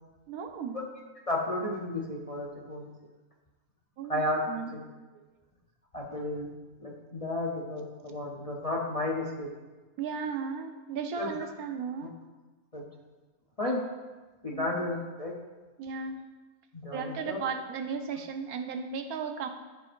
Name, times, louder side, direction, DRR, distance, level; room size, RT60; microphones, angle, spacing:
voice 1, 0.3-0.8 4.0-4.2 4.5-4.7 5.1-5.3 10.0-12.1 14.5-14.7 15.8-16.2 16.9-19.5, right 6 dB, 80° right, 6 dB, 1.2 m, -35 dB
voice 2, 1.3-2.9 4.1-4.4 4.7-4.8 5.9-6.5 6.8-9.5 11.2-11.3 12.7-12.8 13.6-13.8 14.4-15.3 16.7-17.4, left 1 dB, 35° left, -2 dB, 0.6 m, -32 dB
13.5 x 4.7 x 2.6 m, 1.2 s
omnidirectional pair, 1.5 m